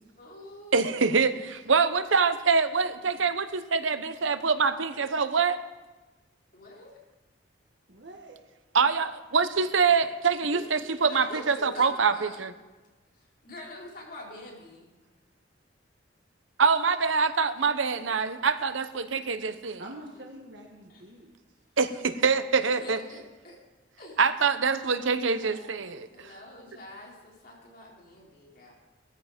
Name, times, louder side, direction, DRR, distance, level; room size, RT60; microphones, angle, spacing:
voice 1, 0.2-1.2 6.5-7.0 10.4-10.7 11.0-12.4 13.4-14.9 20.9-21.0 22.6-23.6 24.0-24.2 25.4-28.7, left 1 dB, 50° left, -3 dB, 4.7 m, -45 dB
voice 2, 0.7-5.6 8.7-12.5 16.6-19.8 21.8-23.0 24.2-26.3, right 5 dB, 85° right, 11 dB, 1.0 m, -25 dB
voice 3, 7.9-8.4 19.8-21.3, right 1 dB, 60° right, 0 dB, 1.6 m, -45 dB
17.0 x 14.0 x 5.2 m, 1.2 s
head